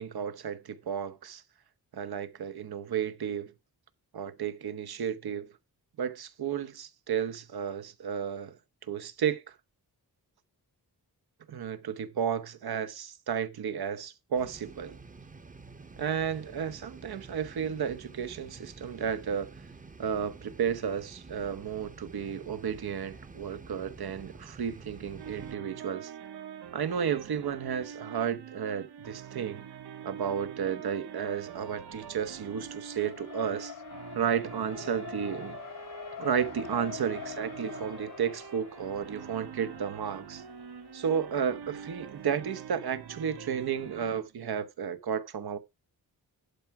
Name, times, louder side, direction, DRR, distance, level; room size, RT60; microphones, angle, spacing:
voice 1, 0.0-1.4 1.9-3.5 4.1-5.5 6.0-8.5 8.9-9.4 11.5-15.0 16.0-19.5 20.0-26.1 26.7-29.6 30.0-33.7 34.1-35.6 36.2-40.4 40.9-45.6, right 8 dB, 70° right, 1.1 m, -33 dB
sound 1, 14.4-25.5, right 3 dB, 20° right, 0.8 m, -49 dB
sound 2, 25.2-44.2, right 8 dB, 90° right, 1.4 m, -45 dB
Race car auto racing, 31.3-42.3, left 10 dB, 55° left, 0.6 m, -46 dB
11.5 x 4.8 x 5.8 m
wide cardioid pair, 150°, 38 cm